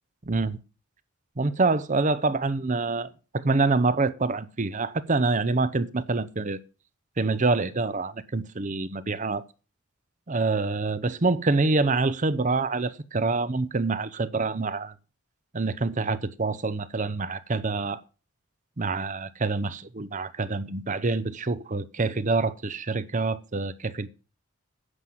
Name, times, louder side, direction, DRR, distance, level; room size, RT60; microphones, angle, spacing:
voice 1, 0.3-0.6 1.4-3.1 3.3-6.6 7.2-9.4 10.3-14.9 15.5-18.0 18.8-24.1, right 3 dB, 35° right, 0.7 m, -26 dB
9.8 x 7.3 x 7.8 m
head